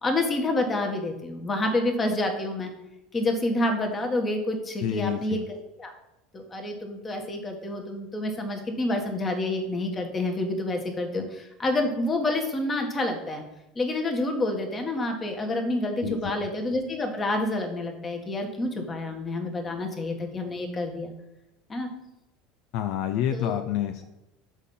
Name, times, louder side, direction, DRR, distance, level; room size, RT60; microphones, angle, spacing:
voice 1, 0.0-2.7 3.1-5.9 6.3-13.4 13.7-21.1 21.7-21.9 23.3-23.6, left 2 dB, 25° left, 4 dB, 1.4 m, -28 dB
voice 2, 4.8-5.4 16.0-16.5 22.7-24.0, left 11 dB, 60° left, 8 dB, 0.4 m, -28 dB
6.3 x 4.1 x 5.4 m, 0.93 s
hypercardioid pair, 80°, 0 cm